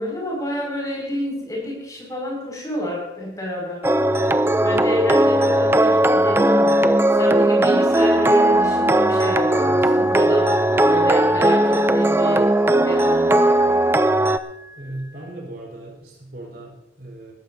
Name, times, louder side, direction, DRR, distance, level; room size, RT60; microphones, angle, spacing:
voice 1, 0.0-3.8 4.1-4.2 4.6-13.8, left 1 dB, 20° left, -2 dB, 5.6 m, -29 dB
sound 1, 3.8-14.4, right 1 dB, 15° right, 0.4 m, -17 dB
Wind instrument woodwind instrument, 7.9-15.4, left 5 dB, 75° left, 1.6 m, -41 dB
voice 2, 14.8-17.3, right 1 dB, 60° right, -2 dB, 4.3 m, -37 dB
19.0 x 14.0 x 2.7 m, 0.90 s
head